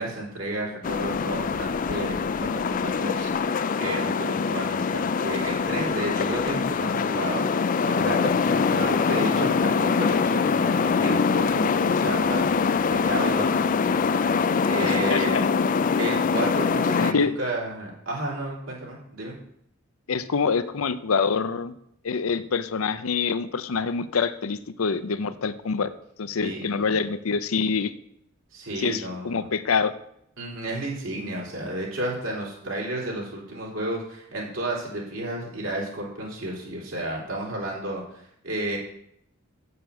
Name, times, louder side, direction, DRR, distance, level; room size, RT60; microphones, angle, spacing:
voice 1, 0.0-14.4 14.7-15.4 16.0-19.3 26.4-27.0 28.5-29.5 30.4-38.8, right 1 dB, 70° right, -3 dB, 3.4 m, -32 dB
sound 1, 0.8-17.1, left 5 dB, 40° left, 0.3 m, -24 dB
voice 2, 14.8-15.5 17.1-17.3 20.1-21.7 22.0-25.9 26.2-27.9 28.8-29.9, left 5 dB, 85° left, 13 dB, 0.6 m, -26 dB
7.8 x 6.8 x 6.9 m, 0.73 s
head